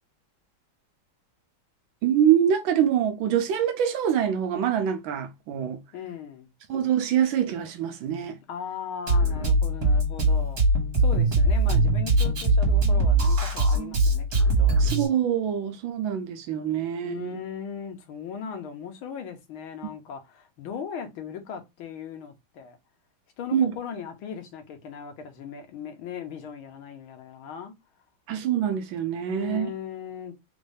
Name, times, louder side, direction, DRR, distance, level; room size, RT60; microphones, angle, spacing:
voice 1, 2.0-5.8 6.7-8.4 14.8-17.4 23.5-23.7 28.3-29.7, right 9 dB, 75° right, 1.5 m, -25 dB
voice 2, 5.9-6.5 8.5-10.6 11.0-14.3 14.6-14.8 17.0-22.8 23.4-27.7 29.2-30.4, left 7 dB, 85° left, 1.8 m, -38 dB
Drum kit, 9.1-15.1, right 2 dB, 50° right, 2.1 m, -21 dB
4.3 x 2.6 x 3.3 m
omnidirectional pair, 2.2 m